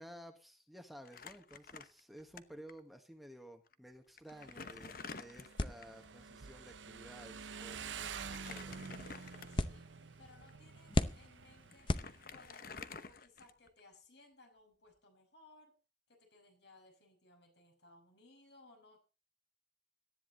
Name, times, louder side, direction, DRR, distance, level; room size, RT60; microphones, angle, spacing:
voice 1, 0.0-8.9, equal, ahead, 5 dB, 1.3 m, -54 dB
Crumpling crinkling, 1.0-2.4 2.7-2.8 3.7-3.8 4.2-6.0 8.1-9.8 10.3-10.5 11.4-11.5 11.7-13.8, left 4 dB, 50° left, 1.0 m, -50 dB
Motorcycle, 4.3-12.5, right 6 dB, 80° right, 0.8 m, -49 dB
sound 1, 5.6-12.7, left 2 dB, 25° left, 0.7 m, -41 dB
voice 2, 9.5-12.0 12.3-15.8 16.1-19.0, left 2 dB, 65° left, 3 dB, 6.0 m, -63 dB
18.5 x 13.0 x 4.1 m, 0.34 s
head